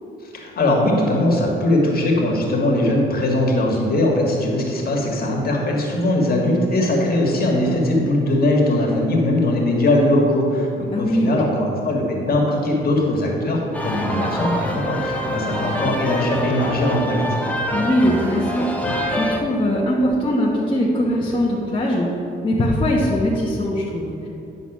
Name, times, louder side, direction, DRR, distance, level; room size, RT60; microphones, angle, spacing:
voice 1, 0.3-17.2, left 1 dB, 50° left, -1 dB, 1.8 m, -20 dB
voice 2, 10.9-11.3 17.7-22.1 22.4-24.3, equal, 25° left, -5 dB, 1.2 m, -21 dB
sound 1, 13.7-19.4, equal, 5° left, 1.0 m, -25 dB
10.0 x 4.0 x 6.1 m, 2.7 s
cardioid pair, 90°, 20 cm